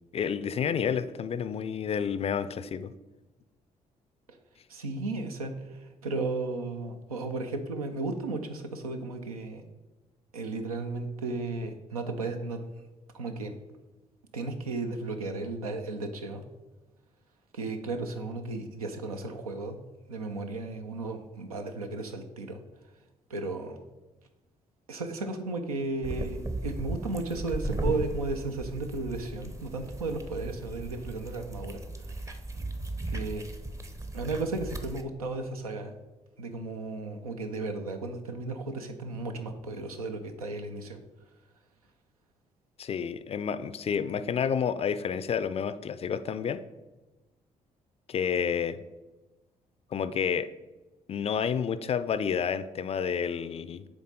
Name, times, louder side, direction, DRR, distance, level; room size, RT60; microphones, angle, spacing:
voice 1, 0.1-2.9 42.8-46.6 48.1-48.8 49.9-50.5 51.1-53.9, left 7 dB, 35° left, 13 dB, 0.4 m, -30 dB
voice 2, 4.7-9.6 10.3-12.7 13.1-13.5 14.3-16.4 17.5-19.8 20.1-23.0 23.3-23.8 24.9-32.4 33.1-33.4 34.1-35.9 36.4-41.0, right 3 dB, 80° right, 6 dB, 0.5 m, -34 dB
sound 1, 26.0-35.0, right 1 dB, 15° right, 0.6 m, -36 dB
9.5 x 3.6 x 3.8 m, 1.1 s
figure-of-eight pair, 40°, 18 cm